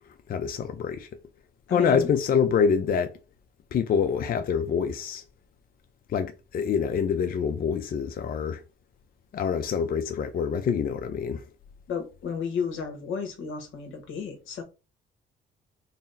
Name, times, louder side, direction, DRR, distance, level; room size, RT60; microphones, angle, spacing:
voice 1, 0.3-1.1 1.7-3.2 3.7-5.2 6.1-8.6 9.3-11.5, left 6 dB, 45° left, 0.5 m, -26 dB
voice 2, 1.7-2.1 11.9-14.6, left 6 dB, 80° left, 1.1 m, -32 dB
3.9 x 2.0 x 3.9 m
cardioid pair, 90°, 20 cm